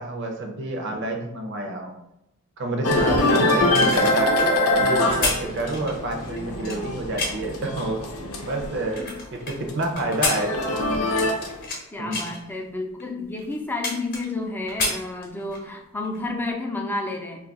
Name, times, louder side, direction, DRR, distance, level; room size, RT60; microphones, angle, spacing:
voice 1, 0.0-2.0 2.6-4.4 4.7-8.0 8.4-9.0 9.3-10.6 12.0-12.3, right 1 dB, 55° right, 2 dB, 0.6 m, -28 dB
sound 1, 2.8-9.1 9.4-11.7, left 1 dB, 90° left, 0.6 m, -24 dB
voice 2, 2.9-3.5 9.0-9.2 11.9-17.4, left 2 dB, 10° left, 1 dB, 0.4 m, -31 dB
sound 2, 3.6-7.6 8.1-9.5 10.0-11.8 12.1-12.4 13.0-13.1 13.4-14.4 14.7-15.7 16.0-16.2, left 3 dB, 45° left, 0.7 m, -30 dB
2.7 x 2.4 x 3.8 m, 0.88 s
head